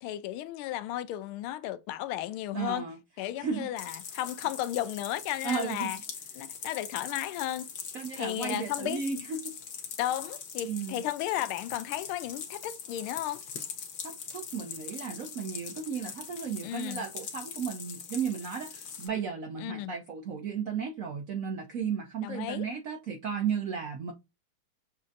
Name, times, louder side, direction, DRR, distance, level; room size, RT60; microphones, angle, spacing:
voice 1, 0.0-2.8 3.2-6.0 6.4-7.7 8.2-9.0 10.0-13.4 16.6-17.0 19.6-19.9 22.2-22.6, left 13 dB, 85° left, 1.4 m, -34 dB
voice 2, 2.5-3.0 3.4-3.7 5.4-5.9 7.9-9.5 10.6-11.0 14.0-24.1, right 6 dB, 85° right, 0.7 m, -34 dB
sound 1, 3.8-19.1, left 7 dB, 60° left, 1.5 m, -42 dB
7.2 x 2.5 x 2.6 m
omnidirectional pair, 2.3 m